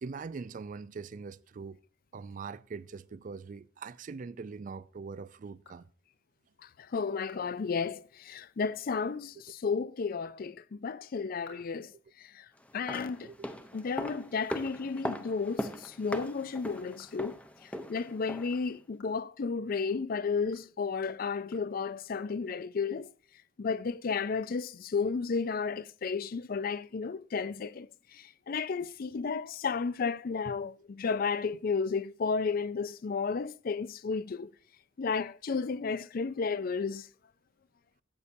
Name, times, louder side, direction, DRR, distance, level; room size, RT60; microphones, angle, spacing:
voice 1, 0.0-1.8 2.1-5.9 9.4-9.5 11.5-12.0 12.8-12.9 13.2-13.5 20.4-20.6 28.8-28.9 30.5-30.6, right 4 dB, 45° right, 0.4 m, -43 dB
sound 1, 5.6-6.4 6.8-6.9 7.3-7.4 7.8-7.9 8.3-8.4 8.8-9.2 9.4-9.6 11.1-12.3 12.7-15.6 15.9-16.1 16.5-20.0 20.4-22.0, left 3 dB, 75° left, 3.7 m, -57 dB
voice 2, 6.9-11.9 12.3-12.4 12.7-13.3 13.7-17.4 17.9-23.1 23.6-27.9 28.1-34.5 35.0-37.1, left 5 dB, 50° left, 0.4 m, -33 dB
sound 2, 12.7-18.7 18.9-19.0, equal, 5° left, 0.7 m, -40 dB
13.5 x 8.3 x 2.6 m
head